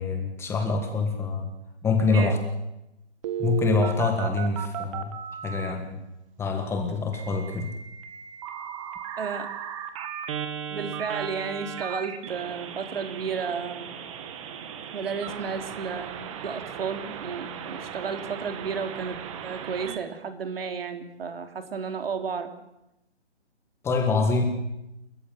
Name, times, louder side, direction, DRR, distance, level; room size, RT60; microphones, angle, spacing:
voice 1, 0.0-1.5 1.8-2.4 3.4-5.2 5.4-6.0 6.4-7.7 23.8-24.4, left 4 dB, 5° left, 5 dB, 1.6 m, -25 dB
Telephone, 3.2-5.7 7.1-20.0, right 9 dB, 30° right, 2.1 m, -36 dB
voice 2, 9.2-9.5 10.7-13.9 14.9-19.2 19.4-22.5, right 6 dB, 55° right, 7 dB, 3.4 m, -32 dB
29.0 x 14.5 x 9.2 m, 0.89 s
hypercardioid pair, 150°, 35 cm